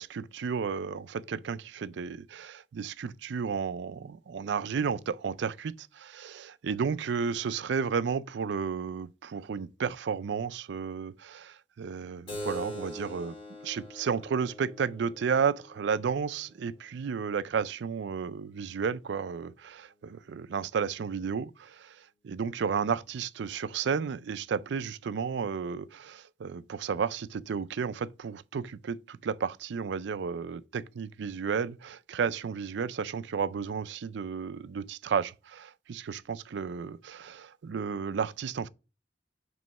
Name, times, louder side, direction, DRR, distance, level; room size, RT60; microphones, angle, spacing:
voice 1, 0.0-13.3 13.6-21.9 22.2-38.7, right 6 dB, 70° right, 0.4 m, -32 dB
Keyboard (musical), 12.3-17.4, equal, 30° left, 2.0 m, -43 dB
7.5 x 3.1 x 5.3 m
head